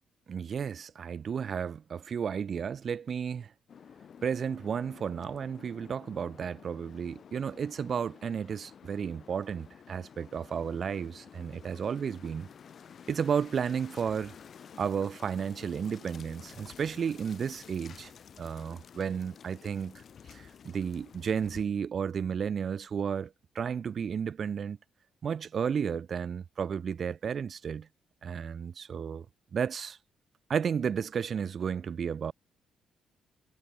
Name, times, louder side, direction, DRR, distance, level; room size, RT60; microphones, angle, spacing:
voice 1, 0.3-3.5 4.2-12.5 13.1-14.3 14.8-18.1 18.4-20.0 20.3-24.8 25.2-27.9 28.2-29.2 29.5-30.0 30.5-32.3, right 7 dB, 50° right, 1.1 m, -33 dB
sound 1, 3.7-21.6, left 7 dB, 55° left, 5.6 m, -52 dB
cardioid pair, 90°, 0 cm